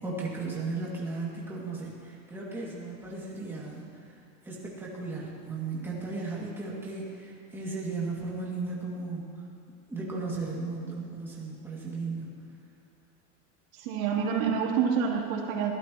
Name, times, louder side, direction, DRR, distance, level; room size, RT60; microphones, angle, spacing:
voice 1, 0.0-4.1 4.4-9.2 9.9-12.3, right 3 dB, 5° right, -6 dB, 2.5 m, -35 dB
voice 2, 13.7-15.7, right 7 dB, 85° right, -3 dB, 3.5 m, -27 dB
22.0 x 16.5 x 3.1 m, 2.5 s
supercardioid pair, 170°, 40 cm